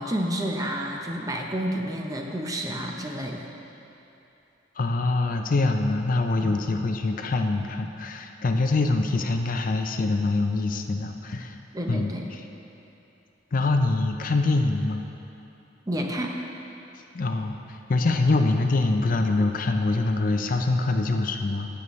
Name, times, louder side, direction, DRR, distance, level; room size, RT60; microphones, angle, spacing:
voice 1, 0.0-3.5 6.4-6.6 11.7-12.2 15.9-16.3, equal, 20° right, 1 dB, 0.7 m, -30 dB
voice 2, 4.8-11.6 11.9-12.4 13.5-15.0 17.1-21.7, left 2 dB, 50° left, 5 dB, 0.5 m, -24 dB
16.0 x 6.9 x 3.1 m, 2.9 s
head